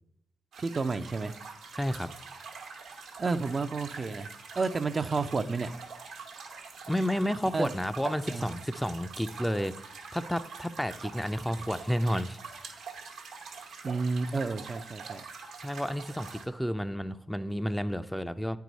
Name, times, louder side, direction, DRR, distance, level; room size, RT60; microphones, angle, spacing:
sound 1, 0.5-16.5, right 5 dB, 85° right, 1.1 m, -45 dB
voice 1, 0.6-1.3 3.2-4.3 4.6-5.7 7.5-7.7 8.3-8.5 13.8-15.2, right 4 dB, 45° right, 9 dB, 0.5 m, -30 dB
voice 2, 1.7-2.1 6.9-12.4 15.6-18.6, equal, 5° left, 11 dB, 0.4 m, -31 dB
8.9 x 4.7 x 4.0 m, 0.72 s
supercardioid pair, 45°, 0 cm